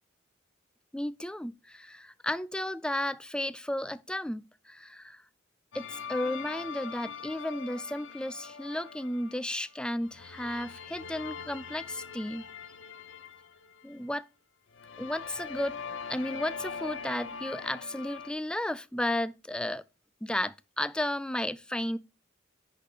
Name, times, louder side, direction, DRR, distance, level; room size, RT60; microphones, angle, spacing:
voice 1, 0.9-5.2 5.7-12.4 13.8-14.3 15.0-15.8 16.1-19.8 20.2-22.0, left 1 dB, 5° left, 0.3 m, -33 dB
sound 1, 5.7-9.6 10.0-14.1 14.7-18.3, left 6 dB, 65° left, 0.7 m, -42 dB
10.5 x 4.2 x 3.3 m
head